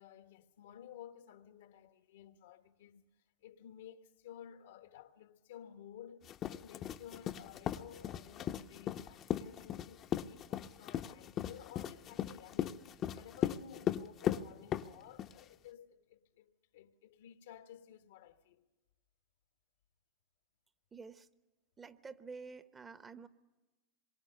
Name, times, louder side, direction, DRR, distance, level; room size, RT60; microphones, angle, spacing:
voice 1, 0.0-3.0 3.4-18.6, left 10 dB, 75° left, 1.4 m, -54 dB
sound 1, 6.2-15.4, left 10 dB, 40° left, 0.8 m, -37 dB
voice 2, 20.9-21.3 21.8-23.3, right 4 dB, 20° right, 1.0 m, -49 dB
26.0 x 23.5 x 6.6 m
hypercardioid pair, 100°, 0 cm